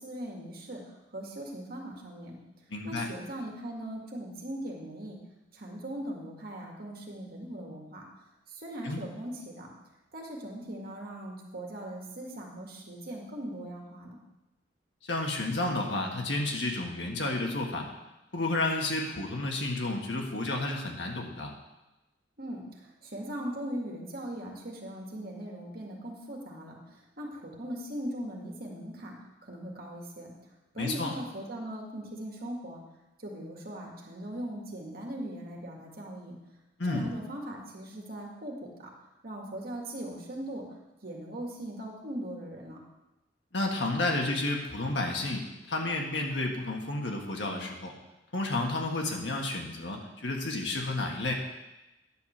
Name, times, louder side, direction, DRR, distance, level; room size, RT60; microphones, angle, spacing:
voice 1, 0.0-2.4 2.8-5.2 5.5-8.0 8.5-9.7 10.1-14.2 22.4-29.2 29.4-30.3 30.7-32.8 33.2-36.4 36.9-38.9 39.2-40.7 41.0-42.8, right 1 dB, 55° right, -1 dB, 2.0 m, -39 dB
voice 2, 2.7-3.1 8.8-9.0 15.0-17.9 18.3-21.5 30.8-31.1 36.8-37.0 43.5-47.9 48.3-51.3, left 2 dB, 70° left, 1 dB, 1.6 m, -31 dB
10.5 x 5.0 x 7.3 m, 1.0 s
head